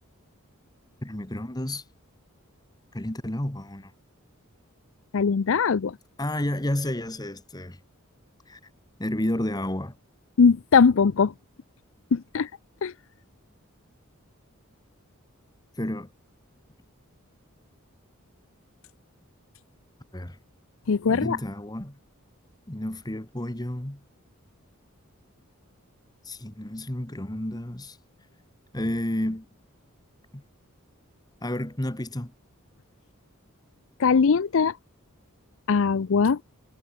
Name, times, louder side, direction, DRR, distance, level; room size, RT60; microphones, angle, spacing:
voice 1, 1.0-1.9 2.9-3.9 6.2-7.8 8.5-8.6 9.0-10.0 15.8-16.1 20.1-20.4 21.1-22.0 22.7-24.0 26.2-28.0 28.7-29.4 30.3-30.4 31.4-32.3, left 1 dB, 20° left, 1.6 m, -31 dB
voice 2, 5.1-5.9 10.4-11.3 12.1-12.5 12.8-12.9 20.9-21.4 34.0-34.8 35.7-36.4, left 5 dB, 65° left, 0.5 m, -20 dB
head